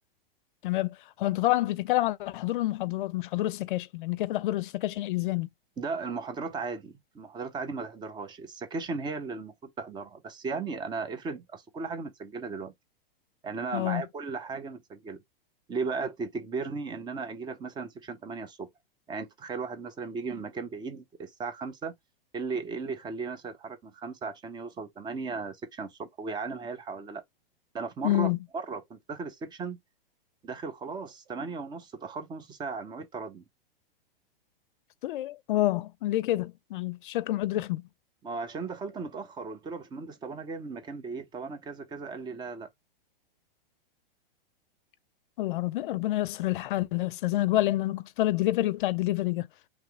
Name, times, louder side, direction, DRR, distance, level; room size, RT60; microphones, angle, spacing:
voice 1, 1.2-5.5 13.7-14.0 28.0-28.4 35.0-37.8 45.4-49.5, left 16 dB, 60° left, 0.5 m, -28 dB
voice 2, 5.8-12.7 13.4-15.2 15.7-18.7 19.1-21.9 22.3-27.2 27.7-29.8 30.4-33.4 38.2-42.7, right 4 dB, 15° right, 0.7 m, -36 dB
3.1 x 2.9 x 4.6 m
hypercardioid pair, 120°, 29 cm